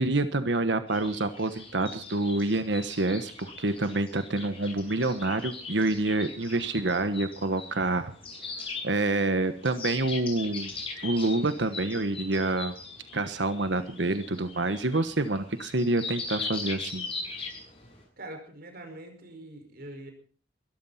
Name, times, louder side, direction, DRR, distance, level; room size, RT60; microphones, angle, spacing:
voice 1, 0.0-8.1 8.8-10.7 11.0-12.7 13.1-17.1, right 2 dB, 80° right, 10 dB, 1.3 m, -27 dB
sound 1, 0.9-18.0, left 3 dB, 30° left, 7.3 m, -40 dB
voice 2, 18.2-20.1, right 1 dB, 55° right, 5 dB, 5.4 m, -43 dB
22.0 x 13.5 x 4.3 m, 0.44 s
head